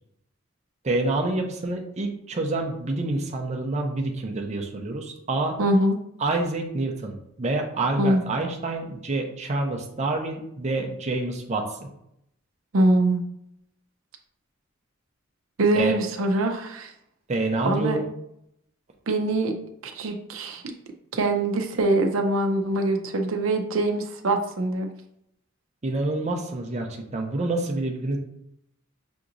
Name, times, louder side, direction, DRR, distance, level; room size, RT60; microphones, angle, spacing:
voice 1, 0.8-5.6 6.2-11.7 15.8-15.9 17.3-18.1 25.8-28.2, right 2 dB, 35° right, 2 dB, 0.6 m, -27 dB
voice 2, 5.6-6.0 8.0-8.2 12.7-13.2 15.6-16.9 17.6-18.0 19.1-19.5 19.8-20.7 21.1-24.9, right 2 dB, 80° right, 4 dB, 0.5 m, -23 dB
6.0 x 2.8 x 2.5 m, 0.76 s
head